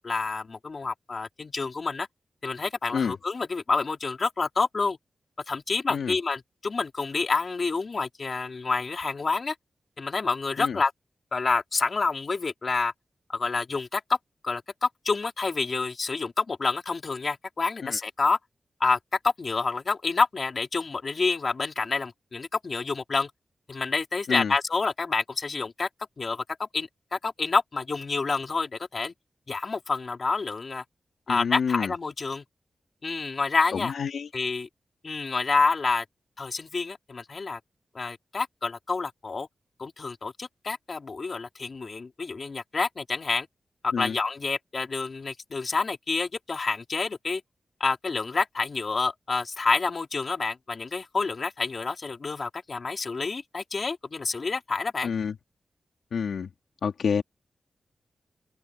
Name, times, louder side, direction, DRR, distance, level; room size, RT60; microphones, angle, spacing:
voice 1, 0.0-2.1 2.4-5.0 5.5-9.6 10.0-10.9 11.3-12.9 13.3-14.2 14.4-18.4 18.8-19.0 19.2-23.3 23.7-25.9 26.2-29.1 29.5-30.8 31.3-32.4 33.0-33.9 34.3-34.7 35.0-36.0 36.4-37.6 37.9-39.5 39.8-43.5 43.8-47.4 47.8-55.1, left 4 dB, 45° left, 3.6 m, -28 dB
voice 2, 31.3-31.9 33.7-34.3 43.9-44.2 55.0-55.3 56.1-56.5 56.8-57.2, left 6 dB, 90° left, 2.3 m, -28 dB
open air
wide cardioid pair, 115°, 0 cm